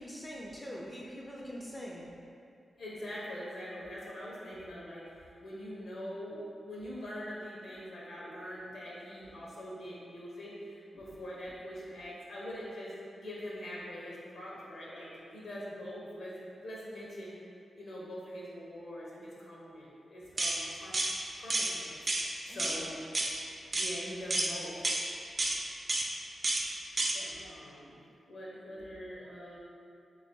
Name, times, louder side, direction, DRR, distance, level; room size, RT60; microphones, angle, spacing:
voice 1, 0.0-2.1 2.3-2.4 22.5-22.8, equal, 15° left, -3 dB, 0.5 m, -43 dB
voice 2, 2.8-16.3 16.6-17.3 17.8-21.0 21.4-22.0 22.4-23.0 23.7-24.8 27.1-28.0 28.3-29.6, equal, 75° left, -6 dB, 1.2 m, -43 dB
sound 1, 20.4-20.6 20.9-21.1 21.5-21.7 22.1-22.3 22.6-22.8 23.1-23.3 23.7-23.9 24.3-24.5 24.8-25.0 25.4-25.6 25.9-26.1 26.4-26.6 27.0-27.1, right 2 dB, 35° right, 0.5 m, -30 dB
3.7 x 3.4 x 3.6 m, 2.5 s
wide cardioid pair, 95°, 0 cm